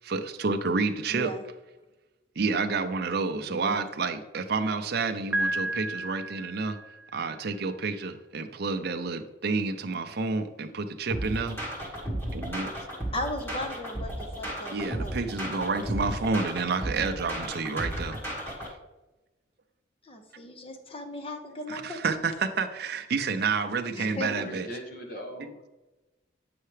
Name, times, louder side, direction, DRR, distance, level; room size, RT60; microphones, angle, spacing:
voice 1, 0.0-1.3 2.4-6.8 7.1-11.8 12.3-12.7 14.7-18.2 21.7-24.7, right 4 dB, 55° right, 6 dB, 0.5 m, -29 dB
voice 2, 1.1-1.4 3.3-3.8 13.1-15.2 20.0-22.0 24.0-24.4, left 1 dB, 30° left, 6 dB, 0.7 m, -37 dB
Piano, 5.3-7.2, right 1 dB, 10° right, 0.5 m, -32 dB
sound 1, 11.1-18.7, right 1 dB, 10° left, 1.4 m, -34 dB
voice 3, 24.2-25.7, equal, 50° left, 2 dB, 1.3 m, -40 dB
8.6 x 5.6 x 3.3 m, 1.1 s
head